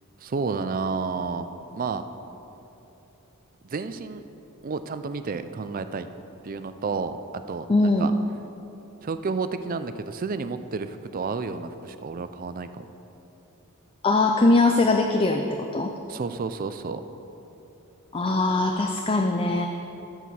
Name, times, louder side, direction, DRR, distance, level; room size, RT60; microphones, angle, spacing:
voice 1, 0.2-1.5 1.7-2.1 3.6-4.2 4.6-6.1 6.4-7.2 7.5-8.1 9.0-12.8 16.1-17.0, right 4 dB, 40° right, 11 dB, 0.4 m, -31 dB
voice 2, 7.7-8.1 14.0-15.9 18.1-19.7, left 2 dB, 25° left, 4 dB, 0.4 m, -21 dB
13.5 x 4.7 x 7.0 m, 3.0 s
head